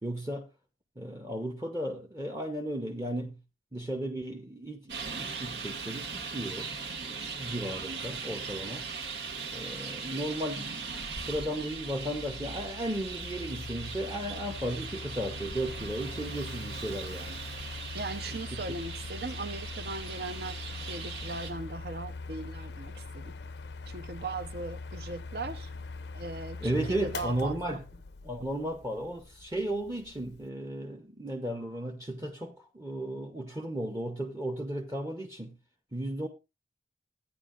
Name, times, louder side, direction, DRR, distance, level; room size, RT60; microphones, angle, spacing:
voice 1, 0.0-0.5 1.0-3.4 3.7-6.7 7.0-8.9 9.5-17.4 18.3-18.6 26.6-27.8 28.2-35.6 35.9-36.3, right 1 dB, 15° right, 0.7 m, -35 dB
Traffic noise roadway noise, 4.9-21.5, right 5 dB, 80° right, 1.7 m, -40 dB
Mechanical fan, 10.8-30.5, left 3 dB, 80° left, 0.5 m, -43 dB
voice 2, 17.9-23.3 23.9-25.7 26.1-27.8, right 3 dB, 65° right, 0.8 m, -39 dB
14.5 x 9.4 x 2.5 m
head